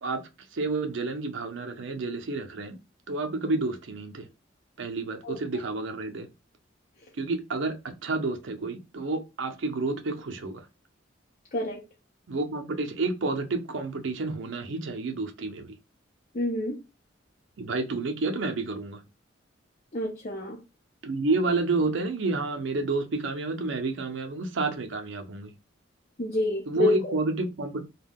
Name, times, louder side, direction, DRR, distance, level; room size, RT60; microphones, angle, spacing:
voice 1, 0.0-2.8 3.1-4.3 4.8-6.3 7.1-10.7 12.3-15.8 17.6-19.0 21.0-25.5 26.7-27.8, right 3 dB, 75° right, 0.6 m, -30 dB
voice 2, 16.3-16.8 19.9-20.6 26.2-27.1, left 1 dB, 40° left, 0.6 m, -28 dB
2.3 x 2.1 x 3.4 m
head